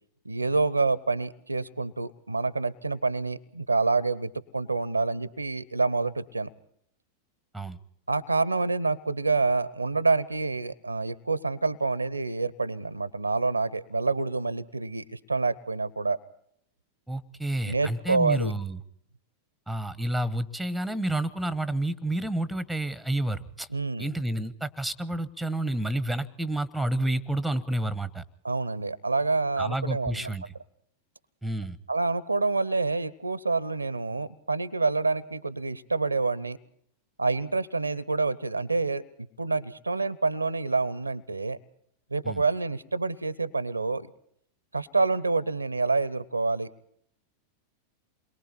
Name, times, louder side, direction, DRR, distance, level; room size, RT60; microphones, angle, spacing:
voice 1, 0.2-6.5 8.1-16.2 17.7-18.5 23.7-24.1 28.4-30.3 31.9-36.6 37.2-39.0 39.4-41.6 42.1-44.1 44.7-46.7, right 3 dB, 80° right, 22 dB, 0.7 m, -27 dB
voice 2, 17.1-18.8 19.7-23.7 24.0-28.2 29.6-30.4 31.4-31.8 42.2-42.4, right 1 dB, ahead, 19 dB, 1.0 m, -30 dB
28.5 x 22.5 x 4.2 m, 0.66 s
figure-of-eight pair, 90°, 0 cm